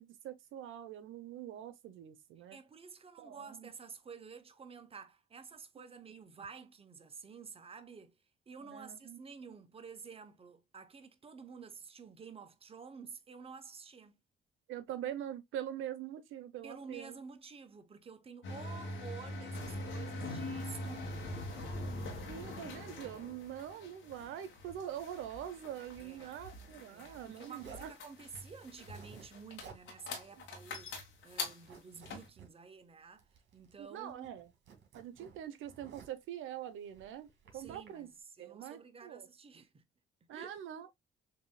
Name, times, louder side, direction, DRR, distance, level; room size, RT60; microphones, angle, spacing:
voice 1, 0.0-2.6 3.2-3.7 8.6-9.2 14.7-17.1 22.3-27.9 30.4-30.5 33.8-34.5 34.9-37.3 37.5-38.1 38.4-39.3 40.3-40.9, right 10 dB, 85° right, 0.7 m, -44 dB
voice 2, 2.5-8.1 8.5-14.2 16.6-21.8 26.0-26.4 26.9-31.0 31.2-33.2 33.5-34.3 37.5-38.1 38.4-39.8 40.3-40.5, right 5 dB, 30° right, 0.8 m, -51 dB
sound 1, 18.4-32.3, left 2 dB, 80° left, 1.5 m, -43 dB
Zipper (clothing), 27.6-28.0 28.7-29.3 29.6-29.9 30.2-30.3 30.7-31.1 31.4-32.5 33.2-33.8 34.1-36.3 36.9-37.9, right 6 dB, 70° right, 1.8 m, -56 dB
6.8 x 2.7 x 2.2 m
cardioid pair, 90°, 20 cm